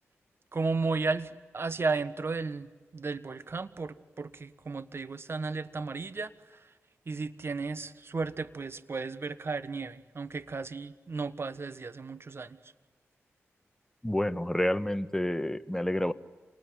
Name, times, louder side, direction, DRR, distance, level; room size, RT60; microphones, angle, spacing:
voice 1, 0.5-6.7 7.1-12.6, right 4 dB, 50° right, 15 dB, 1.3 m, -34 dB
voice 2, 14.0-16.1, left 1 dB, 10° left, 12 dB, 1.3 m, -29 dB
27.5 x 19.5 x 9.9 m, 1.4 s
cardioid pair, 45°, 5 cm